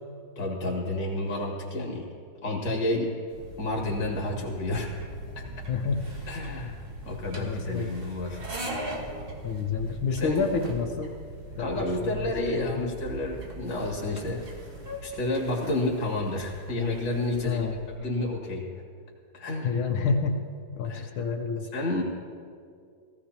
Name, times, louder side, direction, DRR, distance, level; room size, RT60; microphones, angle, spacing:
voice 1, 0.4-2.1 2.4-3.1 3.6-4.9 5.4-5.5 6.3-6.8 7.1-8.4 10.1-10.5 11.6-14.4 15.0-17.7 17.9-18.6 19.3-19.7 20.8-21.0 21.7-22.0, left 2 dB, 60° left, 0 dB, 2.7 m, -30 dB
sound 1, 3.3-17.5, right 1 dB, 30° right, 1.4 m, -43 dB
Fowl / Bird, 3.3-18.0, right 1 dB, 90° right, 2.5 m, -43 dB
voice 2, 5.7-6.0 7.4-7.9 9.4-11.1 11.6-12.8 17.4-17.8 19.6-20.5 20.7-21.7, left 5 dB, 90° left, 3 dB, 1.6 m, -29 dB
18.5 x 15.5 x 2.9 m, 2.2 s
omnidirectional pair, 2.2 m